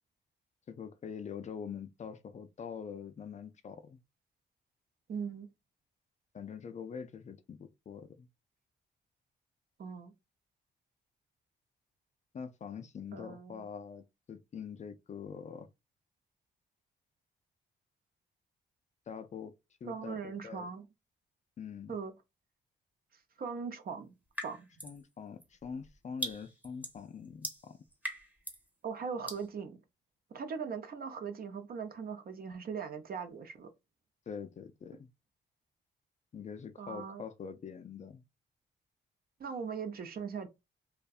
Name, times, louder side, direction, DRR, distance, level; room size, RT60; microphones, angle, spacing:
voice 1, 0.7-4.0 6.3-8.3 12.3-14.0 14.3-15.7 19.1-19.5 19.8-20.7 21.6-22.0 24.8-27.8 34.3-35.1 36.3-38.2, left 6 dB, 40° left, 0.4 m, -44 dB
voice 2, 5.1-5.5 9.8-10.1 13.1-13.7 19.9-20.9 21.9-22.1 23.4-24.2 24.4-24.7 28.8-29.8 30.3-33.7 36.8-37.2 39.4-40.5, right 6 dB, 55° right, 0.5 m, -40 dB
sound 1, 24.3-25.0 25.4-28.7 29.3-29.5, right 1 dB, 10° right, 0.8 m, -41 dB
2.6 x 2.1 x 2.3 m
cardioid pair, 70°, 19 cm